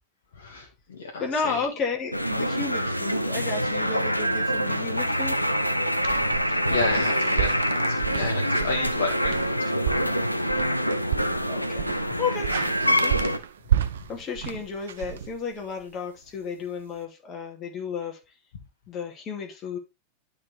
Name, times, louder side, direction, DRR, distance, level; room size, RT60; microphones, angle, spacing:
voice 1, 0.4-1.6 6.5-7.5 7.9-10.1, left 3 dB, 60° left, 1.6 m, -32 dB
voice 2, 1.2-5.4 11.5-11.9 12.2-12.5 12.8-13.1 14.1-18.2 18.9-19.8, left 5 dB, 30° left, 2.7 m, -32 dB
sound 1, 2.1-13.4, equal, 90° left, 0.6 m, -25 dB
sound 2, 6.0-15.8, right 10 dB, 65° right, 0.8 m, -31 dB
11.5 x 4.9 x 3.4 m
figure-of-eight pair, 90°, 0 cm